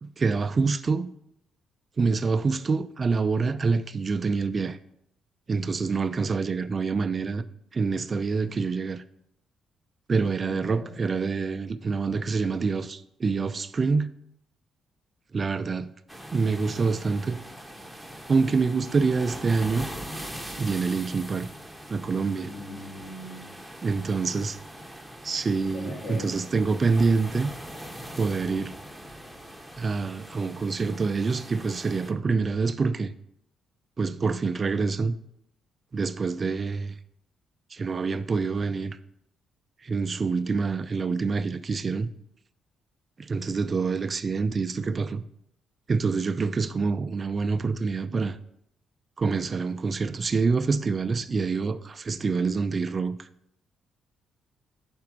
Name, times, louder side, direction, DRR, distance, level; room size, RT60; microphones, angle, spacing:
voice 1, 0.0-1.1 2.0-4.8 5.5-7.4 7.7-9.0 10.1-14.1 15.3-15.9 16.3-17.4 18.3-19.9 20.6-21.5 21.9-22.5 23.8-24.6 25.2-27.5 28.2-28.7 29.8-33.1 34.0-35.2 35.9-37.0 37.7-39.0 39.8-42.1 43.2-45.2 45.9-48.4 49.2-53.3, right 4 dB, 35° right, 0.3 m, -26 dB
voice 2, 10.5-10.9 22.4-23.6 25.7-26.4, left 1 dB, 65° left, 2.1 m, -40 dB
sound 1, 16.1-32.1, equal, ahead, 0.7 m, -42 dB
5.9 x 4.3 x 5.8 m
cardioid pair, 90°, 0 cm